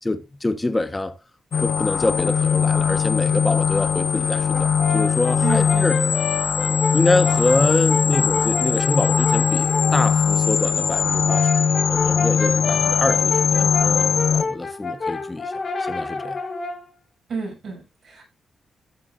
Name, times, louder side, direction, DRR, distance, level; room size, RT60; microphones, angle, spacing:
voice 1, 0.0-1.1 1.6-6.0 6.9-15.5 15.8-16.4, left 2 dB, 15° left, 1.2 m, -25 dB
sound 1, 1.5-14.4, left 6 dB, 60° left, 0.7 m, -20 dB
Brass instrument, 4.5-10.1 11.0-16.9, left 4 dB, 40° left, 2.3 m, -29 dB
voice 2, 5.4-5.9 17.3-18.3, right 4 dB, 65° right, 6.5 m, -30 dB
14.0 x 7.1 x 2.6 m
cardioid pair, 110°, 0 cm